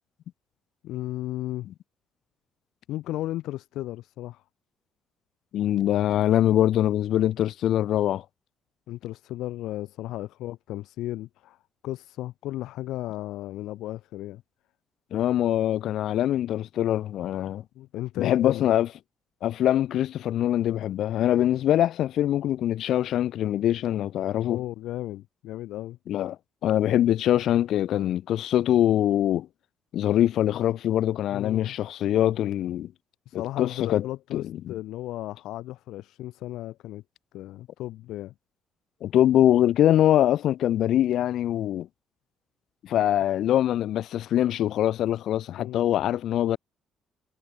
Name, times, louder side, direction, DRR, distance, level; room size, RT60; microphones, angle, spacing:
voice 1, 0.8-1.7 2.9-4.4 8.9-11.6 11.8-14.4 17.8-18.7 24.4-26.0 31.3-31.8 33.3-37.0 37.3-38.3 45.6-45.9, left 15 dB, 85° left, 2.0 m, -35 dB
voice 2, 5.5-8.2 15.1-17.6 18.2-18.9 19.4-24.6 26.1-26.4 26.6-29.5 29.9-32.9 33.3-34.1 34.3-34.4 39.0-41.9 42.8-46.6, left 12 dB, 60° left, 0.9 m, -23 dB
cardioid pair, 170°, 0 cm